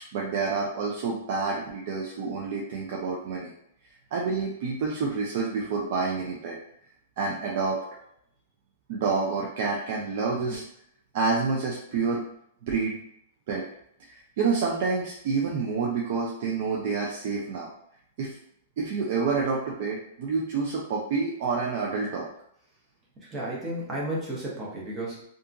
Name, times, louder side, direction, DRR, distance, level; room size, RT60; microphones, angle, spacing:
voice 1, 0.1-3.5 4.1-6.6 7.2-7.8 8.9-10.6 11.1-12.2 12.6-13.0 13.5-13.6 14.1-17.7 18.2-18.4 18.8-22.3, right 4 dB, 45° right, -3 dB, 0.4 m, -28 dB
voice 2, 23.2-25.2, right 1 dB, 15° right, -4 dB, 0.8 m, -33 dB
2.7 x 2.4 x 2.5 m, 0.71 s
supercardioid pair, 165°, 0 cm